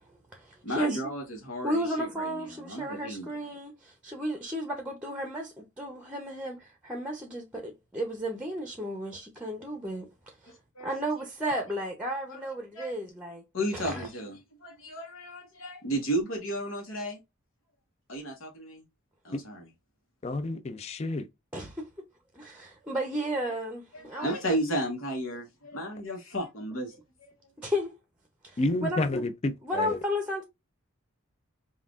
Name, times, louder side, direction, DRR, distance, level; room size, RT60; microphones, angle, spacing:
voice 1, 0.0-1.0 1.6-10.5 10.8-13.4 13.7-14.1 21.5-21.9 22.3-24.3 27.6-27.9 28.4-29.0 29.6-30.4, equal, 5° right, 0.7 m, -33 dB
voice 2, 0.6-3.3 10.5-10.9 11.4-11.6 12.3-12.4 12.7-12.9 13.5-17.2 18.1-18.8 19.2-19.7 23.9-27.3, right 1 dB, 80° left, 1.1 m, -34 dB
voice 3, 20.2-21.3 28.6-30.0, left 2 dB, 30° left, 0.4 m, -30 dB
5.6 x 2.4 x 2.4 m
head